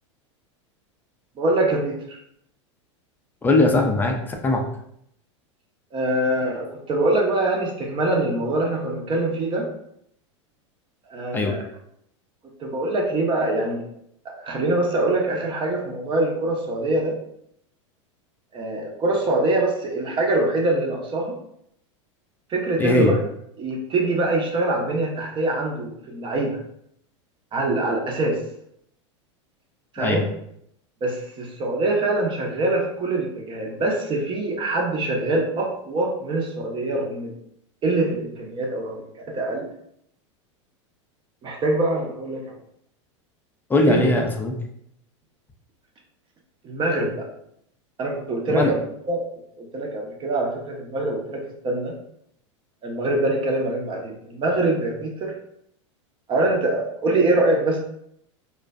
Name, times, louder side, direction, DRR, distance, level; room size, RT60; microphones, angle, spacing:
voice 1, 1.4-2.2 5.9-9.7 11.1-11.6 12.6-13.8 14.2-17.1 18.5-21.4 22.5-23.2 23.6-26.6 27.5-28.4 29.9-30.3 31.0-37.3 37.8-39.0 39.3-39.7 41.4-42.4 43.9-44.1 46.6-47.3 48.0-48.8 49.1-49.2 49.6-51.9 52.8-55.3 56.3-57.8, right 2 dB, 30° right, 0 dB, 0.6 m, -24 dB
voice 2, 3.4-4.6 11.3-11.5 22.8-23.1 30.0-30.2 43.7-44.5 48.6-48.7, left 2 dB, 10° left, 3 dB, 0.4 m, -20 dB
2.5 x 2.1 x 2.3 m, 0.72 s
hypercardioid pair, 105°, 16 cm